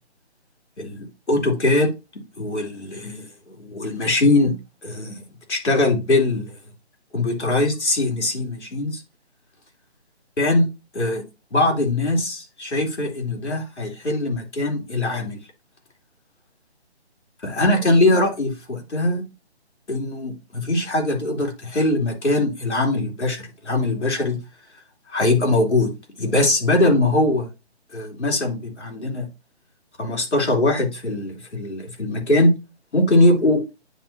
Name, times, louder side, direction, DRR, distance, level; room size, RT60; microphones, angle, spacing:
voice 1, 0.8-1.9 2.4-4.6 4.8-5.2 5.5-6.5 7.1-9.0 10.4-10.7 10.9-11.2 11.5-15.4 17.4-19.2 19.9-24.4 25.1-25.9 26.2-27.5 27.9-29.3 30.0-32.5 32.9-33.6, left 2 dB, 85° left, 3.0 m, -21 dB
10.0 x 3.8 x 2.8 m
hypercardioid pair, 175°, 33 cm